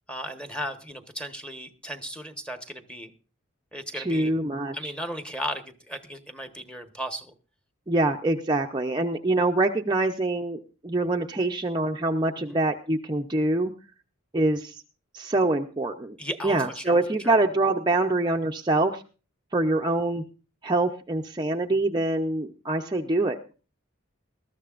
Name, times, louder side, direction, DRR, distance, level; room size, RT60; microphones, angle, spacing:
voice 1, 0.1-3.1 3.7-4.3 4.7-7.3 12.4-12.6 16.2-17.4, equal, 5° left, 7 dB, 1.2 m, -36 dB
voice 2, 3.9-4.9 7.9-13.7 14.3-14.8 15.1-16.2 16.4-19.0 19.5-20.2 20.6-23.4, right 2 dB, 20° right, 2 dB, 0.6 m, -25 dB
20.5 x 13.5 x 2.5 m, 0.36 s
head